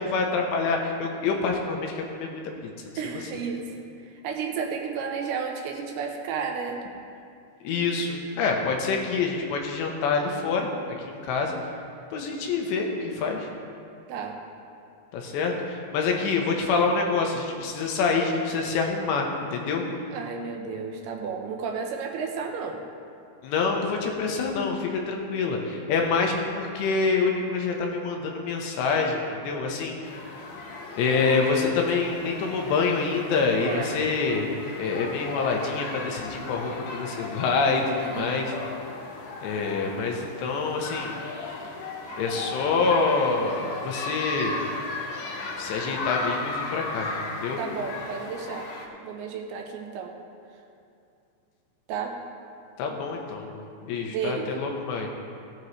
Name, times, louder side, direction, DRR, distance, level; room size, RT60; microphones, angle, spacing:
voice 1, 0.0-2.4 3.0-3.2 7.6-10.7 11.1-11.5 12.1-13.5 15.1-19.8 23.4-30.0 31.0-34.5 34.8-38.5 39.4-41.2 42.2-44.6 45.6-47.6 52.8-55.1, left 4 dB, 90° left, 1 dB, 3.3 m, -26 dB
voice 2, 3.0-6.8 14.1-14.4 20.1-22.8 33.6-33.9 38.2-38.5 47.6-48.7 49.0-50.2 51.9-52.1 53.9-54.5, right 5 dB, 80° right, 2 dB, 2.7 m, -32 dB
sound 1, 30.0-48.9, left 3 dB, 70° left, 2.0 m, -36 dB
16.0 x 9.1 x 3.2 m, 2.5 s
omnidirectional pair, 4.9 m